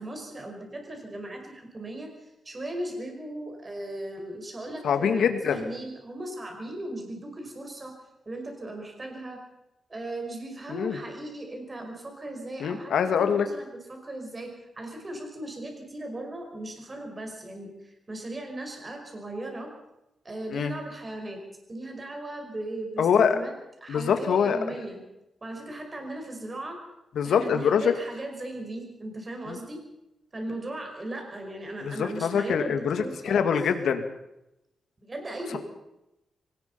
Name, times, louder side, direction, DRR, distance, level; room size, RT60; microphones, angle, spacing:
voice 1, 0.0-7.9 8.3-9.4 9.9-19.7 20.2-21.4 21.7-23.5 23.8-25.0 25.4-26.8 27.2-29.8 30.3-33.5 35.0-35.6, right 1 dB, 25° right, 3 dB, 5.4 m, -37 dB
voice 2, 4.8-5.6 10.7-11.0 12.6-13.5 20.5-20.7 23.0-23.4 23.9-24.6 27.2-27.9 29.5-29.6 31.8-34.0, left 7 dB, 80° left, 8 dB, 1.9 m, -24 dB
24.0 x 19.0 x 5.7 m, 0.88 s
wide cardioid pair, 160°, 0 cm